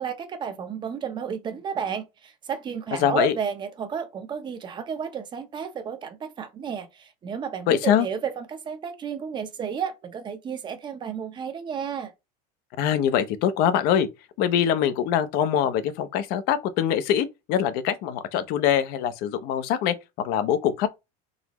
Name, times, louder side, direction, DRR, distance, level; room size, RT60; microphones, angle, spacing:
voice 1, 0.0-12.1, right 7 dB, 25° right, 0.7 m, -32 dB
voice 2, 3.0-3.4 7.7-8.1 12.8-14.1 14.4-20.9, left 9 dB, 50° left, 0.7 m, -23 dB
4.0 x 3.8 x 3.0 m
cardioid pair, 160°, 20 cm